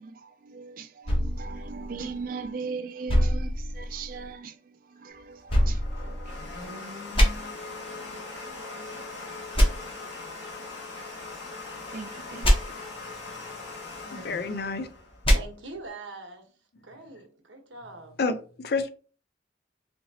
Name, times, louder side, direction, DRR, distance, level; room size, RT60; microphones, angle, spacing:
voice 1, 0.0-6.4 7.3-7.6 7.9-8.2 8.4-9.0 9.7-9.8 10.6-10.7 11.9-12.8, right 5 dB, 50° right, 0.4 m, -40 dB
sound 1, 1.1-2.5 3.1-4.3 5.5-6.6 7.1-7.3 9.5-9.7 12.4-12.6 15.2-15.4, equal, 30° left, 1.0 m, -23 dB
Domestic sounds home sounds, 5.1-15.8, left 3 dB, 70° left, 1.6 m, -40 dB
voice 2, 14.1-14.9 18.2-18.9, left 4 dB, 55° left, 0.4 m, -29 dB
voice 3, 15.3-16.5 16.8-18.2, right 3 dB, 85° right, 1.0 m, -43 dB
4.3 x 2.8 x 2.8 m
head